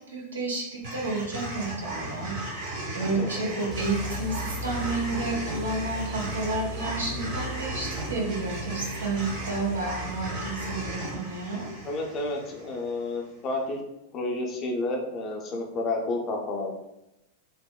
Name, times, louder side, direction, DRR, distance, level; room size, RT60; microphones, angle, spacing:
voice 1, 0.0-11.7, right 3 dB, 75° right, -2 dB, 0.6 m, -31 dB
sound 1, 0.8-13.1, right 2 dB, 45° right, 1.0 m, -36 dB
voice 2, 3.2-3.6 11.8-13.8 14.1-16.7, left 2 dB, 30° left, 1 dB, 0.4 m, -30 dB
sound 2, 3.7-11.3, left 1 dB, 20° right, 0.6 m, -37 dB
2.9 x 2.0 x 2.2 m, 0.89 s
figure-of-eight pair, 90°, 0 cm